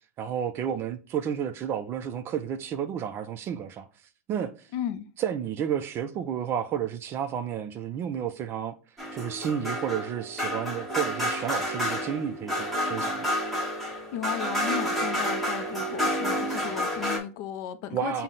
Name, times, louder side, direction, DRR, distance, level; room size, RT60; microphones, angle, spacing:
voice 1, 0.2-3.9 4.3-4.7 5.2-8.8 9.1-13.3 17.9-18.2, right 8 dB, 30° right, 0.3 m, -31 dB
voice 2, 4.7-5.1 13.8-18.2, left 10 dB, 50° left, 0.4 m, -35 dB
sound 1, 9.0-17.2, equal, ahead, 0.8 m, -29 dB
5.6 x 2.1 x 3.8 m
supercardioid pair, 145°, 8 cm